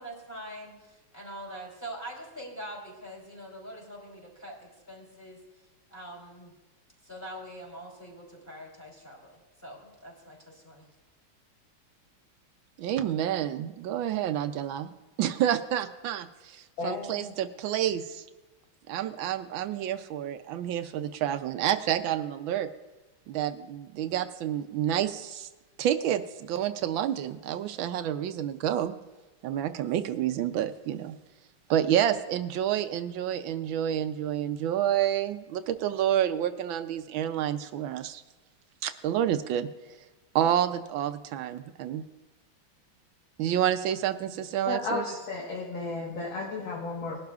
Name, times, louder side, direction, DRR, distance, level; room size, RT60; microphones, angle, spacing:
voice 1, 0.0-5.4 5.9-6.5 7.0-10.9, right 1 dB, 10° left, -3 dB, 3.3 m, -44 dB
voice 2, 12.8-14.9 15.2-18.2 18.9-22.7 23.3-25.5 25.8-28.9 29.4-31.1 31.7-38.2 38.8-39.7 40.3-42.0 43.4-45.0, right 10 dB, 75° right, 10 dB, 1.3 m, -29 dB
voice 3, 16.8-17.3 44.7-47.2, left 3 dB, 65° left, -4 dB, 2.1 m, -33 dB
20.5 x 11.5 x 2.4 m, 1.1 s
omnidirectional pair, 2.3 m